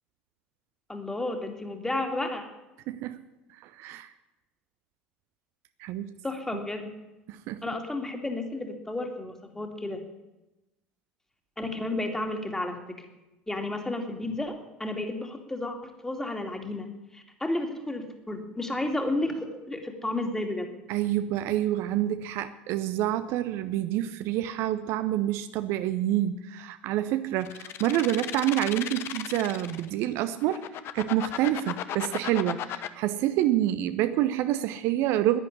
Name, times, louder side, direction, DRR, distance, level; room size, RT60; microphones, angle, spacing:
voice 1, 0.9-2.4 6.2-6.9 7.6-10.0 11.6-13.0 13.5-16.9 17.1-20.7, left 2 dB, 10° left, 5 dB, 2.4 m, -32 dB
voice 2, 2.9-3.2 3.6-4.1 5.8-6.1 7.3-7.6 20.9-30.6 30.9-35.4, right 13 dB, 50° right, 11 dB, 0.7 m, -27 dB
sound 1, 27.4-29.9 30.4-32.9, left 11 dB, 45° left, 0.9 m, -35 dB
11.0 x 10.5 x 10.0 m, 1.0 s
figure-of-eight pair, 70°, 6 cm